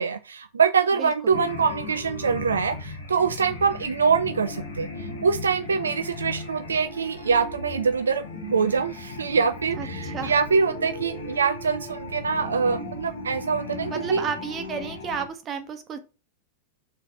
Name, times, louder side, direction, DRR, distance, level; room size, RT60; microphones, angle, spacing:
voice 1, 0.0-14.2, right 5 dB, 70° right, 10 dB, 0.4 m, -24 dB
voice 2, 1.0-1.4 9.8-10.3 13.9-16.0, right 6 dB, 25° right, 7 dB, 1.4 m, -32 dB
sound 1, 1.3-15.3, left 2 dB, 65° left, 1.9 m, -36 dB
5.4 x 4.0 x 5.9 m, 0.32 s
figure-of-eight pair, 90°, 0 cm